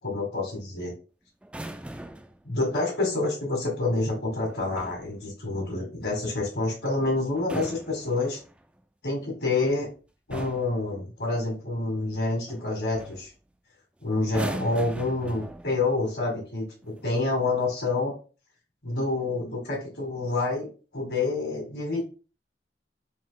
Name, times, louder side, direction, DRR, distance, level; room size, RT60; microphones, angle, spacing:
voice 1, 0.0-0.9 2.4-8.4 9.0-9.9 10.3-13.3 14.0-18.1 18.8-22.0, left 2 dB, 70° left, -2 dB, 1.7 m, -28 dB
sound 1, 1.4-2.4 4.5-5.1 7.3-8.6 9.7-9.9 10.3-10.8 12.5-12.7 13.0-13.3 14.2-15.9 16.8-17.1, right 1 dB, 5° right, 0.3 m, -39 dB
4.0 x 2.7 x 3.9 m, 0.36 s
head